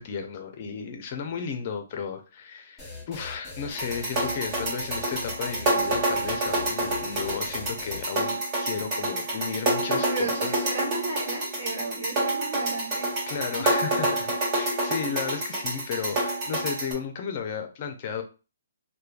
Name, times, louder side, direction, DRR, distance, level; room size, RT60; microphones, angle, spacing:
voice 1, 0.0-10.6 13.3-18.2, left 6 dB, 40° left, 6 dB, 0.5 m, -34 dB
sound 1, 2.8-8.0, left 3 dB, 10° left, 0.9 m, -41 dB
sound 2, 3.7-16.9, right 1 dB, 25° right, 0.9 m, -28 dB
voice 2, 9.8-13.3 13.6-13.8 14.7-15.3, right 3 dB, 65° right, 0 dB, 1.2 m, -34 dB
3.1 x 2.1 x 2.4 m, 0.33 s
hypercardioid pair, 155°, 0 cm